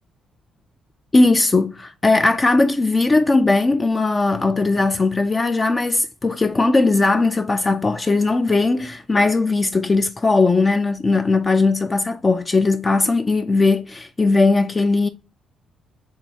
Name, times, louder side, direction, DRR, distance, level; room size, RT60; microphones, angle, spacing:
voice 1, 1.1-15.1, left 3 dB, 25° left, 0.3 m, -18 dB
7.1 x 2.6 x 2.8 m
cardioid pair, 90°, 0 cm